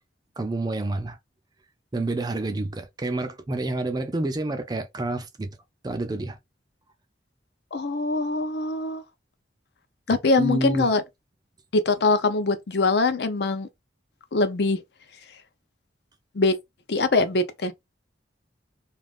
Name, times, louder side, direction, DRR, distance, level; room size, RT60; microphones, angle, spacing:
voice 1, 0.4-1.2 1.9-5.5 5.8-6.4 10.4-10.9, right 2 dB, 20° right, 0.4 m, -28 dB
voice 2, 7.7-9.0 10.1-11.0 11.7-13.7 14.3-14.8 16.3-16.6 16.9-17.7, left 3 dB, 60° left, 0.5 m, -23 dB
2.5 x 2.4 x 3.4 m
head